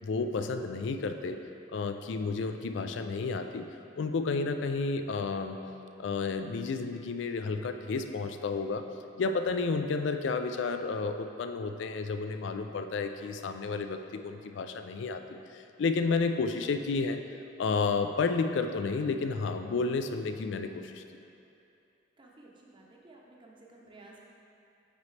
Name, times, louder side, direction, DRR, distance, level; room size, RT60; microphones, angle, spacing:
voice 1, 0.0-1.4 1.7-3.6 4.0-5.6 6.0-8.8 9.2-17.2 17.6-21.0, left 4 dB, 70° left, 7 dB, 0.4 m, -31 dB
voice 2, 22.2-24.2, right 2 dB, 25° right, -2 dB, 0.7 m, -54 dB
9.2 x 4.2 x 3.2 m, 2.7 s
head